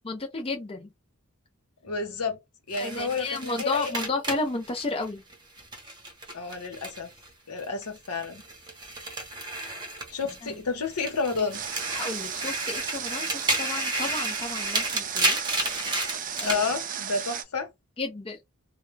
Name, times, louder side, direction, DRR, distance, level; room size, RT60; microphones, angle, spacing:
voice 1, 0.0-0.9 2.8-5.2 10.4-10.5 11.9-15.4 16.4-16.6 18.0-18.4, left 3 dB, 25° left, 0.5 m, -32 dB
voice 2, 1.8-2.4 2.7-4.1 6.3-7.1 7.5-8.4 10.1-11.6 16.5-17.7, left 4 dB, 80° left, 0.9 m, -30 dB
sound 1, 2.7-7.3 7.6-10.6 10.9-16.6, right 2 dB, 20° right, 0.8 m, -32 dB
Water, 11.5-17.4, right 8 dB, 35° right, 0.4 m, -35 dB
2.2 x 2.2 x 3.2 m
head